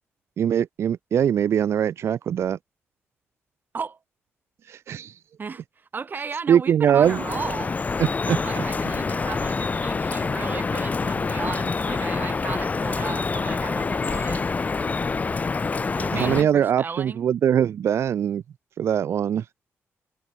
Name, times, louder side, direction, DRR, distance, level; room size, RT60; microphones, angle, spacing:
voice 1, 0.4-2.6 4.7-5.2 6.5-7.2 8.0-8.6 16.1-18.4 18.8-19.5, right 9 dB, 65° right, 0.4 m, -22 dB
voice 2, 5.4-7.7 8.3-14.4 16.0-17.3, right 5 dB, 40° right, 3.1 m, -35 dB
Drip, 7.0-16.4, left 4 dB, 30° left, 1.2 m, -26 dB
cardioid pair, 105°, 5 cm